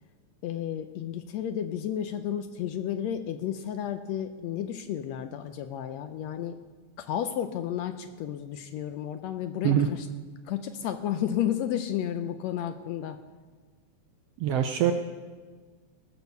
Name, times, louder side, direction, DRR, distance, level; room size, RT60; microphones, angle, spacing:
voice 1, 0.4-6.5 7.0-10.0 10.5-13.2, left 10 dB, 80° left, 9 dB, 1.6 m, -32 dB
voice 2, 14.4-14.9, right 10 dB, 75° right, 6 dB, 1.4 m, -23 dB
18.0 x 6.3 x 6.8 m, 1.4 s
omnidirectional pair, 3.4 m